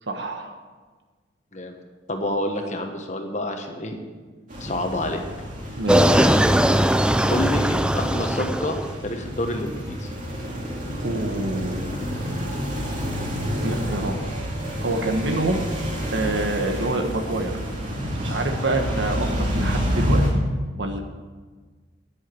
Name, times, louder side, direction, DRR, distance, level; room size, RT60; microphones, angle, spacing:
voice 1, 0.1-0.6 5.8-6.2 11.0-12.0 13.6-14.2 14.7-15.6 16.1-17.6 18.1-20.4 20.8-21.0, right 2 dB, 70° right, 4 dB, 1.3 m, -27 dB
voice 2, 2.1-4.0 4.6-5.2 7.3-8.8 9.0-10.1, left 1 dB, 35° left, 4 dB, 1.4 m, -28 dB
sound 1, 4.5-20.3, equal, 40° right, 2.5 m, -29 dB
sound 2, 5.9-9.0, equal, 5° right, 0.3 m, -19 dB
10.0 x 8.3 x 7.6 m, 1.4 s
head